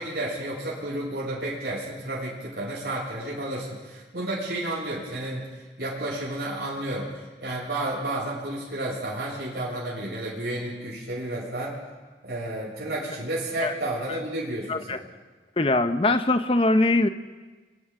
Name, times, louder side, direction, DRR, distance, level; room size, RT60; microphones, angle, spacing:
voice 1, 0.0-5.5 5.8-11.8 12.2-15.0, right 1 dB, 65° right, -6 dB, 7.1 m, -31 dB
voice 2, 15.6-17.1, left 2 dB, 30° left, 9 dB, 0.9 m, -22 dB
30.0 x 24.0 x 3.8 m, 1.4 s
head